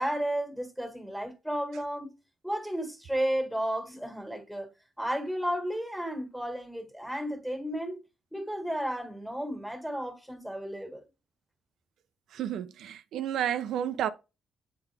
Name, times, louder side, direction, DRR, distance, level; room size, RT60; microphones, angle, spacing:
voice 1, 0.0-2.1 2.4-4.7 5.0-8.0 8.3-11.0, equal, ahead, 1.7 m, -33 dB
voice 2, 12.3-14.1, right 10 dB, 85° right, 0.6 m, -31 dB
8.4 x 3.8 x 3.4 m
cardioid pair, 125°, 0 cm